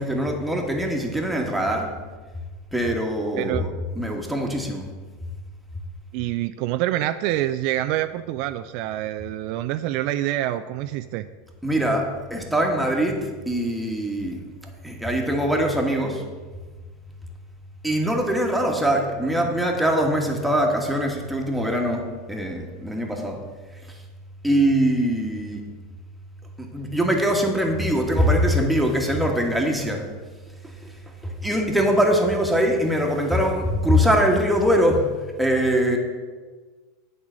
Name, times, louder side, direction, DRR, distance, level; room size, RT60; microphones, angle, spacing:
voice 1, 0.0-1.9 2.7-3.7 3.9-4.9 11.6-14.4 14.8-16.2 17.8-23.4 23.9-24.0 24.4-25.6 26.6-30.1 30.6-31.0 31.2-35.1 35.4-36.0, equal, 5° right, 0 dB, 1.5 m, -22 dB
voice 2, 6.1-11.3, right 14 dB, 60° right, 11 dB, 0.3 m, -26 dB
8.6 x 4.0 x 6.8 m, 1.4 s
hypercardioid pair, 95°, 0 cm